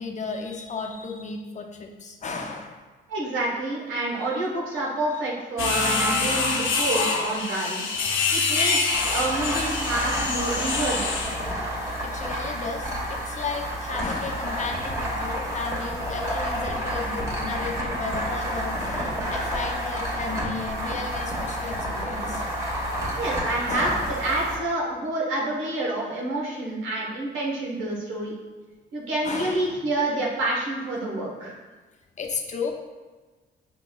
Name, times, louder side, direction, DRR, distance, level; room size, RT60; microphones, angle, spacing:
voice 1, 0.0-2.8 11.8-22.5 23.7-24.1 29.2-29.8 32.2-32.7, left 4 dB, 35° left, 3 dB, 0.6 m, -34 dB
voice 2, 3.1-7.9 8.3-11.3 23.2-28.3 28.9-31.6, right 2 dB, 90° right, -3 dB, 1.2 m, -28 dB
sound 1, 5.6-11.4, left 4 dB, 80° left, 0.7 m, -25 dB
sound 2, 8.9-24.6, equal, 15° right, 1.2 m, -30 dB
5.8 x 4.0 x 2.3 m, 1.3 s
cardioid pair, 90°, 20 cm